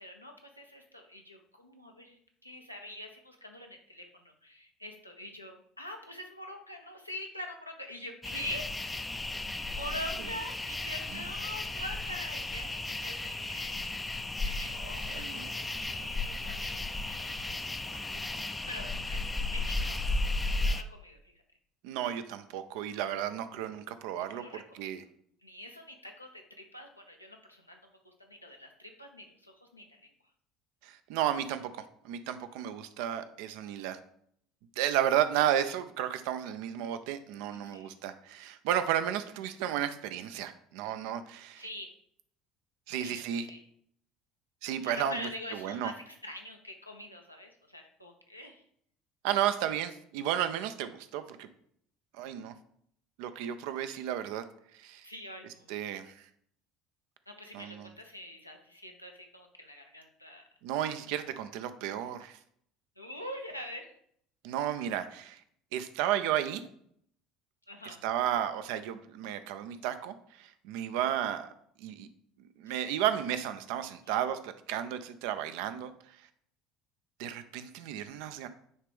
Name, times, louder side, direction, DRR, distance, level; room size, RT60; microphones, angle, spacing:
voice 1, 0.0-2.2 2.4-8.7 9.7-13.9 14.4-17.5 18.7-20.0 20.4-21.2 24.2-24.9 25.4-27.8 28.0-30.1 37.5-37.9 41.6-41.9 42.9-43.6 44.8-48.6 55.0-55.9 57.3-60.4 63.0-63.9 67.7-68.0 72.7-72.8, left 1 dB, 90° left, 2 dB, 0.7 m, -44 dB
sound 1, 8.2-20.8, left 2 dB, 15° left, 0.4 m, -34 dB
voice 2, 14.8-15.5 21.8-24.4 24.7-25.0 30.8-34.0 34.8-41.6 42.9-43.5 44.6-45.9 49.2-51.5 52.2-52.5 53.2-54.4 54.8-55.1 55.7-56.1 57.5-57.9 60.6-62.4 64.4-65.4 65.7-66.6 67.9-71.5 71.8-72.1 72.6-75.9 77.2-78.5, right 10 dB, 60° right, 10 dB, 0.5 m, -33 dB
9.4 x 3.3 x 3.5 m, 0.67 s
figure-of-eight pair, 65°, 0 cm